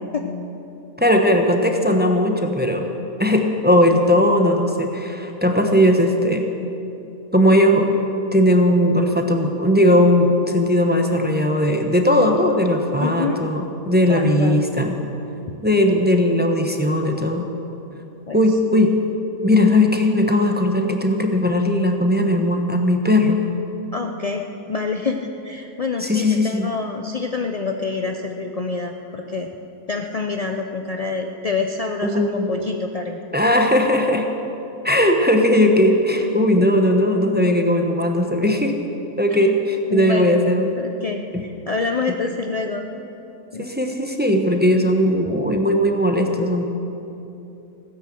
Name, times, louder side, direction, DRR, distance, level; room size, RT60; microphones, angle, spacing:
voice 1, 1.0-2.9 3.2-6.5 7.3-7.9 8.3-15.0 15.6-17.5 18.3-18.9 19.4-23.4 26.0-26.7 32.0-32.5 33.3-34.3 34.8-38.8 39.2-40.8 43.6-46.6, left 1 dB, 10° right, 3 dB, 0.8 m, -18 dB
voice 2, 13.0-13.5 14.1-14.6 15.5-15.6 18.3-18.4 23.9-24.4 24.7-29.5 29.9-33.2 36.6-36.7 39.3-39.5 39.9-40.4 40.8-42.9 43.5-43.7, left 4 dB, 60° left, 3 dB, 0.3 m, -27 dB
16.0 x 9.9 x 7.7 m, 3.0 s
omnidirectional pair, 1.6 m